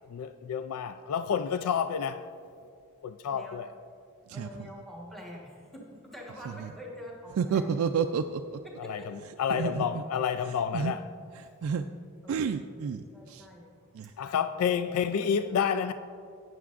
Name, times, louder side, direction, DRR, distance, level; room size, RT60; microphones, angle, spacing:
voice 1, 0.1-2.3 3.0-3.7 8.8-11.1 14.2-15.9, left 7 dB, 90° left, 0.3 m, -29 dB
voice 2, 3.3-3.6 4.3-7.6 8.6-9.1 9.6-9.7 12.2-12.5 13.1-13.7 14.3-15.4 15.8-15.9, equal, ahead, 1.3 m, -46 dB
voice 3, 7.4-8.6 9.5-9.9 10.7-10.9 11.6-11.9 12.3-13.5 13.9-14.1, right 6 dB, 75° right, 0.3 m, -30 dB
14.0 x 9.4 x 2.5 m
head